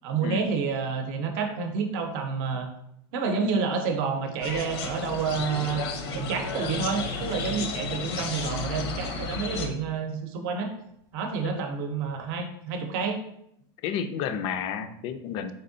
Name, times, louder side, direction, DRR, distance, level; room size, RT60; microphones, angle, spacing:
voice 1, 0.0-2.7 3.1-5.8 6.1-10.7 11.1-13.2, right 5 dB, 55° right, 6 dB, 0.7 m, -29 dB
sound 1, 4.4-9.7, left 4 dB, 75° left, 0.7 m, -33 dB
sound 2, 4.4-9.9 10.4-12.3, right 3 dB, 20° right, 0.4 m, -49 dB
voice 2, 13.8-15.5, left 7 dB, 40° left, 10 dB, 0.3 m, -31 dB
4.2 x 3.5 x 2.7 m, 0.74 s
supercardioid pair, 150°, 13 cm